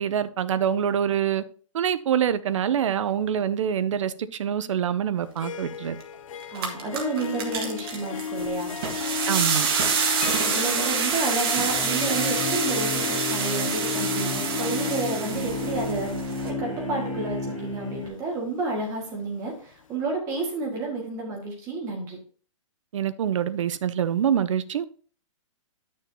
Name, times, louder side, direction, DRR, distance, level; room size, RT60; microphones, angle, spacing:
voice 1, 0.0-1.4 1.7-6.0 9.3-9.7 22.9-24.8, right 9 dB, 65° right, 0.7 m, -25 dB
Harp, 5.2-19.2, left 7 dB, 75° left, 0.7 m, -34 dB
sound 1, 6.0-6.1 6.4-16.5, right 6 dB, 45° right, 1.7 m, -27 dB
voice 2, 6.5-8.7 10.4-22.2, right 3 dB, 20° right, 1.9 m, -31 dB
sound 2, 11.5-18.1, left 2 dB, ahead, 3.2 m, -33 dB
10.5 x 6.4 x 2.8 m
hypercardioid pair, 170°, 17 cm